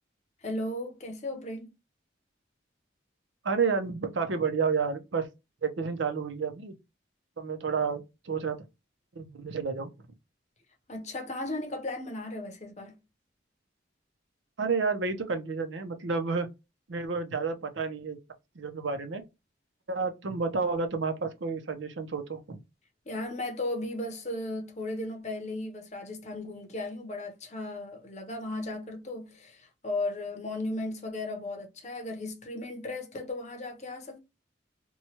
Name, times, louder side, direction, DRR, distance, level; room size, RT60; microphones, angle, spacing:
voice 1, 0.4-1.7 10.9-12.9 23.1-34.2, left 2 dB, 40° left, 0.7 m, -36 dB
voice 2, 3.4-5.3 5.6-6.7 7.4-8.6 9.1-9.9 14.6-16.5 16.9-18.2 18.6-19.2 19.9-22.6, right 5 dB, 85° right, 0.6 m, -30 dB
3.0 x 2.3 x 2.8 m
head